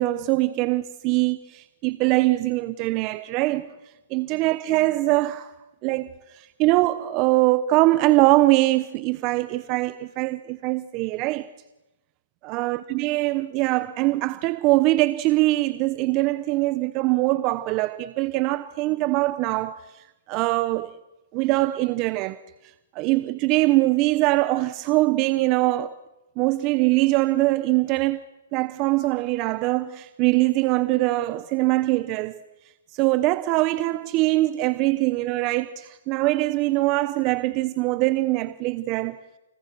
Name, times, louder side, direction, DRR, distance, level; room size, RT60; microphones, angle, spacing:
voice 1, 0.0-3.7 4.1-5.5 5.8-6.1 6.3-11.5 12.4-19.8 20.3-20.9 21.3-22.4 22.9-25.9 26.4-28.2 28.5-32.4 32.9-39.2, right 19 dB, 30° right, 1.0 m, -22 dB
30.0 x 30.0 x 6.2 m
hypercardioid pair, 145°, 0 cm